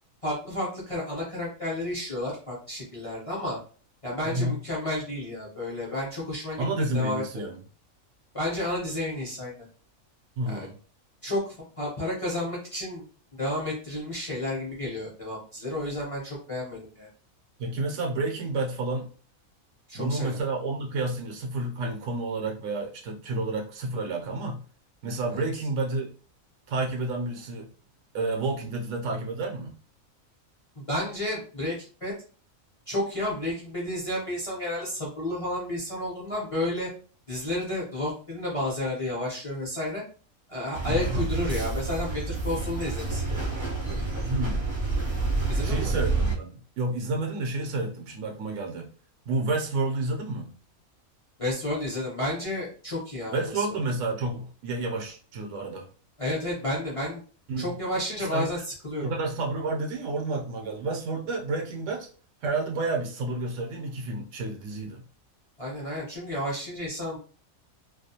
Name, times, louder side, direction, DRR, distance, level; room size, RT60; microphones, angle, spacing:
voice 1, 0.2-3.6 4.0-7.5 8.3-9.5 10.5-10.7 11.2-11.4 11.8-13.0 13.3-17.1 19.9-20.4 25.3-25.4 30.8-31.8 32.0-32.1 32.9-36.9 37.3-40.0 40.5-43.8 45.5-45.9 51.4-53.8 56.2-57.2 57.6-59.1 65.6-67.2, left 1 dB, 35° left, -5 dB, 0.6 m, -31 dB
voice 2, 4.2-4.6 6.6-7.6 10.4-10.8 17.6-19.1 19.9-24.6 25.0-26.1 26.7-27.7 28.1-29.7 40.8-41.2 44.2-44.7 45.6-48.9 49.2-50.5 53.3-55.9 57.5-57.7 58.2-58.5 59.0-62.1 62.4-65.0, right 2 dB, 70° right, 1 dB, 0.8 m, -30 dB
sound 1, 40.7-46.4, right 3 dB, 40° right, 0.4 m, -28 dB
2.4 x 2.2 x 2.7 m, 0.41 s
omnidirectional pair, 1.4 m